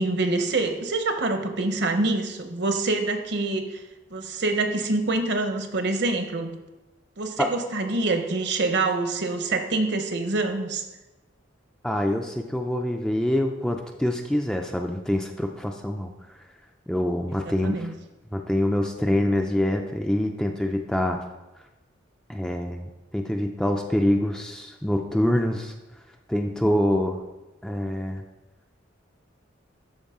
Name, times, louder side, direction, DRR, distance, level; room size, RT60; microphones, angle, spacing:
voice 1, 0.0-3.7 4.1-6.6 7.2-10.8 17.4-17.9, right 2 dB, 60° right, 7 dB, 0.8 m, -26 dB
voice 2, 11.8-16.4 16.9-17.8 18.3-21.2 22.3-25.7 26.3-27.2 27.6-28.2, left 1 dB, 5° left, 3 dB, 0.4 m, -25 dB
12.5 x 4.7 x 3.6 m, 1.1 s
head